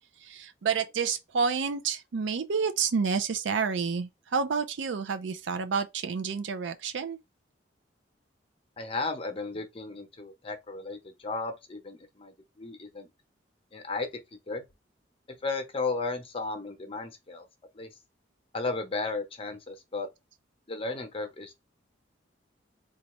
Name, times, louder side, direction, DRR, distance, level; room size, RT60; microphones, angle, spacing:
voice 1, 0.2-7.2, right 5 dB, 80° right, 0.4 m, -29 dB
voice 2, 8.8-13.1 13.7-14.6 15.4-17.5 17.7-17.9 18.5-20.1 20.7-21.5, left 3 dB, 30° left, 0.8 m, -34 dB
4.0 x 2.3 x 3.0 m
head